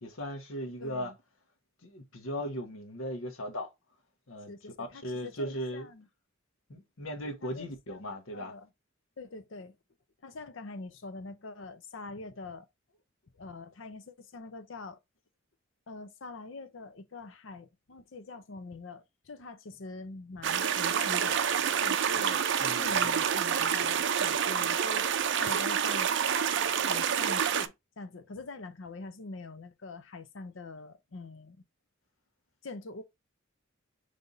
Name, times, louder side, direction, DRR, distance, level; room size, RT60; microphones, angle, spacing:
voice 1, 0.0-1.1 1.8-3.7 4.3-5.9 6.7-8.5 22.1-22.2 22.6-23.2, equal, 85° left, 1.1 m, -38 dB
voice 2, 0.8-1.1 4.5-6.1 7.4-8.0 8.3-8.7 9.2-9.7 10.2-12.7 13.4-15.0 15.9-21.4 21.8-22.4 22.8-25.1 25.4-26.1 26.7-31.6 32.6-33.0, left 3 dB, 70° left, 0.6 m, -44 dB
sound 1, 20.4-27.7, right 8 dB, 60° right, 0.5 m, -28 dB
3.9 x 3.4 x 4.0 m
head